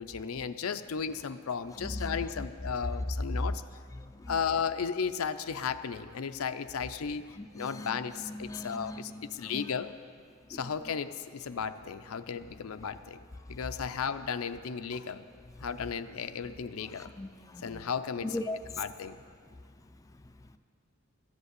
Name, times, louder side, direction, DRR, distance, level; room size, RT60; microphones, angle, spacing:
voice 1, 0.0-3.6 4.3-9.9 10.5-13.2 13.5-15.2 15.6-17.1 17.6-18.4 18.8-19.2, left 6 dB, 75° left, 10 dB, 0.5 m, -35 dB
voice 2, 1.8-2.5 4.0-4.4 7.4-9.7 10.5-10.6 13.4-13.6 16.9-17.8 18.2-18.6 19.5-20.6, left 1 dB, 15° left, 7 dB, 0.4 m, -41 dB
14.0 x 8.1 x 8.2 m, 2.1 s
head